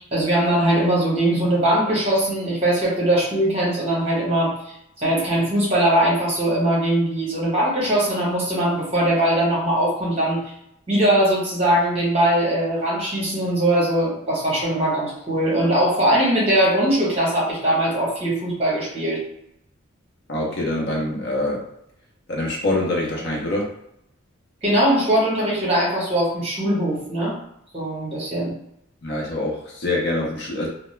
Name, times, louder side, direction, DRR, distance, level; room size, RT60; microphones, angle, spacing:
voice 1, 0.1-4.6 5.0-10.4 10.9-19.2 24.6-27.3 27.7-28.5, right 1 dB, 30° right, -6 dB, 1.1 m, -21 dB
voice 2, 20.3-21.6 22.3-23.7 29.0-30.7, left 1 dB, 55° left, -2 dB, 0.7 m, -25 dB
2.2 x 2.0 x 3.1 m, 0.79 s
head